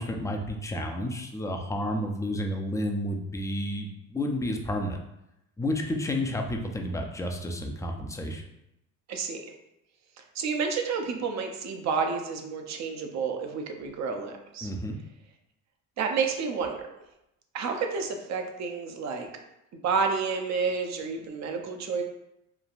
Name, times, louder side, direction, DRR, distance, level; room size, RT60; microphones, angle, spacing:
voice 1, 0.0-5.0 5.6-8.5 14.6-15.0, left 1 dB, 10° left, 2 dB, 0.4 m, -31 dB
voice 2, 9.1-9.5 10.2-14.7 16.0-16.9 17.5-19.3 19.8-22.0, right 5 dB, 50° right, 4 dB, 0.6 m, -30 dB
3.2 x 2.2 x 2.5 m, 0.85 s
supercardioid pair, 75°, 37 cm